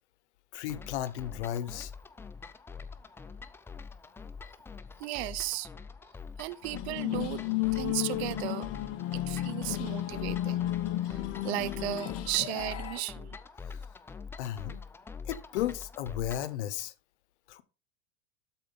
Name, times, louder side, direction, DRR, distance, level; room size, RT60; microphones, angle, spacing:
voice 1, 0.5-1.9 13.7-13.8 14.4-14.8 15.2-16.9 17.5-17.6, left 12 dB, 85° left, 0.9 m, -34 dB
sound 1, 0.7-16.6, left 5 dB, 5° left, 0.4 m, -45 dB
voice 2, 5.0-5.7 6.4-7.4 7.7-8.7 9.1-10.7 11.0-13.4, right 18 dB, 70° right, 0.7 m, -35 dB
sound 2, 6.7-13.0, left 14 dB, 45° left, 0.9 m, -33 dB
12.5 x 4.5 x 3.9 m
supercardioid pair, 125°, 33 cm